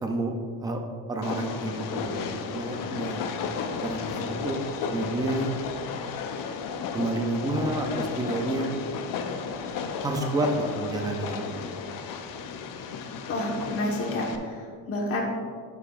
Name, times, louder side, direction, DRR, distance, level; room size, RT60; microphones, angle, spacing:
voice 1, 0.0-0.3 0.6-3.2 3.8-4.6 4.9-5.5 6.9-8.7 9.5-9.6 10.0-11.7, right 2 dB, 10° right, 3 dB, 0.3 m, -29 dB
Train, 1.2-14.4, left 5 dB, 50° left, 0.6 m, -34 dB
voice 2, 13.3-15.2, left 1 dB, 30° left, -2 dB, 1.3 m, -29 dB
9.5 x 7.0 x 2.4 m, 2.1 s
cardioid pair, 170°, 44 cm